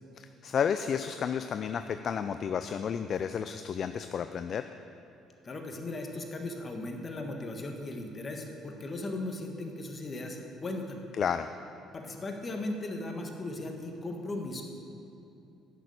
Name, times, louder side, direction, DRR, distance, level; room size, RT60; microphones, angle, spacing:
voice 1, 0.2-4.6 11.2-11.5, left 7 dB, 55° left, 10 dB, 0.3 m, -31 dB
voice 2, 5.4-11.0 11.9-14.6, left 2 dB, 35° left, 3 dB, 1.5 m, -37 dB
10.0 x 6.7 x 6.6 m, 2.8 s
hypercardioid pair, 60°, 0 cm